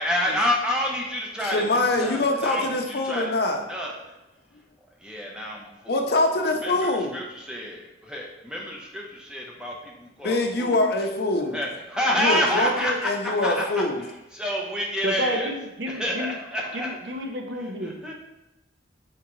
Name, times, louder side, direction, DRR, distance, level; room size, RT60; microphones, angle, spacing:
voice 1, 0.0-1.6 1.9-3.3 3.7-4.1 5.0-6.0 6.6-10.7 11.5-13.9 14.3-15.5 15.9-16.9 17.5-18.1, equal, 5° right, -1 dB, 0.6 m, -28 dB
voice 2, 1.4-3.6 5.9-7.1 10.2-11.6 12.1-14.0, left 2 dB, 55° left, 3 dB, 0.5 m, -24 dB
voice 3, 15.0-16.4 16.7-18.1, equal, 70° right, 4 dB, 0.6 m, -31 dB
4.4 x 3.7 x 3.0 m, 0.94 s
head